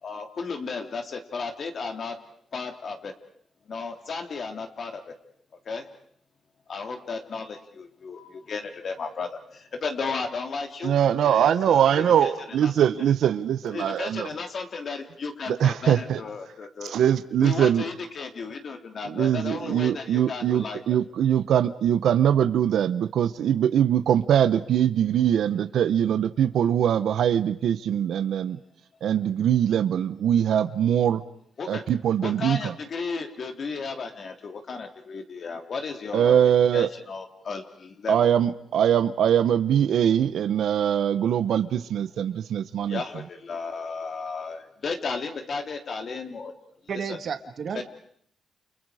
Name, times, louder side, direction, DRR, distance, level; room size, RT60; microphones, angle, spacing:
voice 1, 0.0-2.2 2.5-3.1 3.6-5.1 5.6-5.9 6.7-10.9 11.2-12.9 13.6-16.9 17.4-21.0 31.6-31.8 32.2-38.3 42.9-46.5 46.9-47.2 47.7-47.8, left 4 dB, 55° left, 3.0 m, -34 dB
voice 2, 10.8-14.3 15.5-16.2 16.9-17.8 19.1-28.6 29.0-31.2 31.7-32.7 36.1-36.9 38.1-43.0, right 9 dB, 85° right, 0.9 m, -22 dB
voice 3, 46.9-47.8, right 7 dB, 60° right, 1.8 m, -32 dB
30.0 x 29.5 x 5.0 m
cardioid pair, 95°, 0 cm